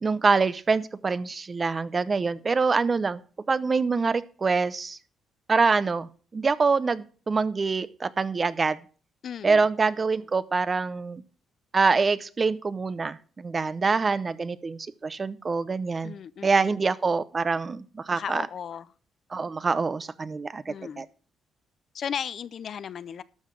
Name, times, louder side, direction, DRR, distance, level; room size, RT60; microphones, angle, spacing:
voice 1, 0.0-3.2 3.5-5.0 5.5-8.8 9.4-11.2 11.7-16.1 16.4-18.4 19.3-21.1, right 4 dB, 35° right, 0.7 m, -25 dB
voice 2, 9.2-9.6 16.0-16.8 18.1-18.9 20.7-21.1 21.9-23.2, left 8 dB, 55° left, 0.6 m, -36 dB
12.5 x 5.7 x 6.1 m
cardioid pair, 90°, 0 cm